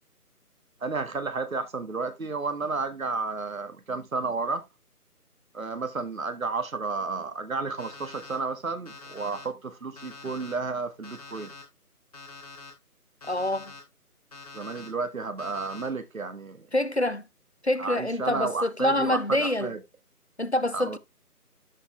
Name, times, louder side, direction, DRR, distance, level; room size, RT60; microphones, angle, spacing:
voice 1, 0.8-4.6 5.5-11.5 14.5-16.7 17.8-19.8 20.7-21.0, right 4 dB, 60° right, 1.5 m, -32 dB
Alarm, 7.8-8.4 8.9-9.4 10.0-10.5 11.0-11.6 12.1-12.7 13.2-13.8 14.3-14.9 15.4-15.9, left 3 dB, 25° left, 2.9 m, -45 dB
voice 2, 13.3-13.7 16.7-17.2 17.6-19.7 20.4-21.0, left 1 dB, 45° left, 0.5 m, -26 dB
13.5 x 4.6 x 3.1 m
figure-of-eight pair, 170°, 46 cm